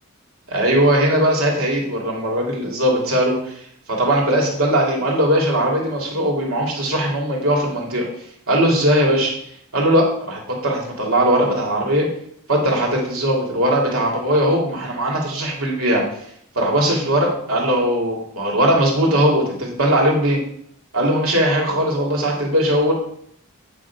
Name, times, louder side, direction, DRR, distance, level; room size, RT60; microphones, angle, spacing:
voice 1, 0.5-3.6 3.9-8.1 8.5-9.3 9.7-12.1 12.5-16.0 16.5-20.4 20.9-22.9, right 1 dB, 85° right, -2 dB, 2.8 m, -19 dB
8.7 x 6.5 x 4.8 m, 0.67 s
head